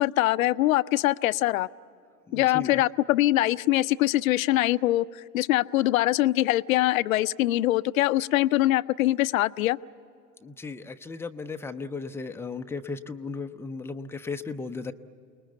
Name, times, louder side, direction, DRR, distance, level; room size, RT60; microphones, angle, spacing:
voice 1, 0.0-1.7 2.3-5.1 5.3-9.8, left 16 dB, 55° left, 17 dB, 0.6 m, -23 dB
voice 2, 2.3-2.8 10.4-14.9, left 4 dB, 5° left, 8 dB, 0.6 m, -36 dB
29.0 x 20.0 x 8.1 m, 2.4 s
figure-of-eight pair, 80°, 49 cm